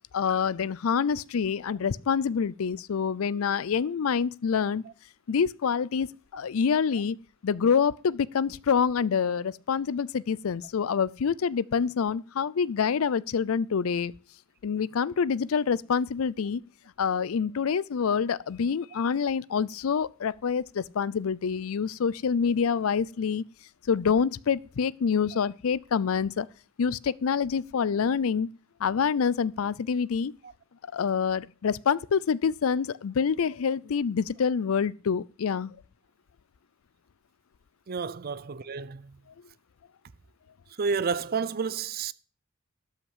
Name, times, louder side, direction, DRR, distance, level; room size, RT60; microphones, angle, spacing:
voice 1, 0.1-4.8 5.3-7.2 7.4-14.1 14.6-16.6 17.0-23.4 23.9-26.5 26.8-28.5 28.8-30.3 30.9-35.7, left 6 dB, 75° left, 0.4 m, -26 dB
voice 2, 37.9-39.2 40.8-42.1, right 5 dB, 45° right, 0.5 m, -30 dB
12.5 x 5.8 x 7.9 m
head